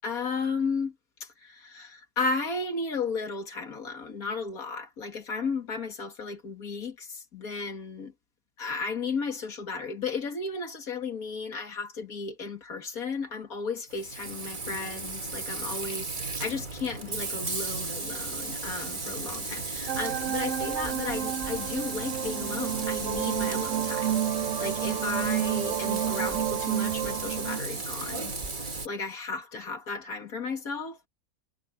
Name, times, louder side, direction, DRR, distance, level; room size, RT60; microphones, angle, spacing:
voice 1, 0.0-0.9 1.4-8.1 8.6-24.2 24.6-28.3 28.8-31.1, left 4 dB, 70° left, 2.7 m, -34 dB
Frying (food), 13.9-28.9, right 3 dB, 30° right, 1.8 m, -35 dB
sound 1, 19.9-27.6, right 11 dB, 65° right, 0.9 m, -30 dB
omnidirectional pair, 1.6 m